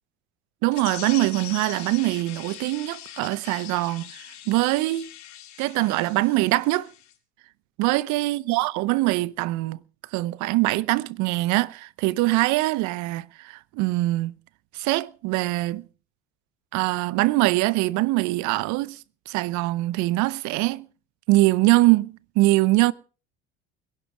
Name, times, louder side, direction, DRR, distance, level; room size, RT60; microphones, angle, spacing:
voice 1, 0.6-5.1 5.6-6.9 7.8-9.8 10.1-14.3 14.7-15.8 16.7-19.0 19.3-20.9 21.3-22.9, right 19 dB, 65° right, 0.9 m, -23 dB
sound 1, 0.7-7.1, left 12 dB, 60° left, 3.1 m, -41 dB
22.0 x 11.0 x 5.0 m
supercardioid pair, 100°, 32 cm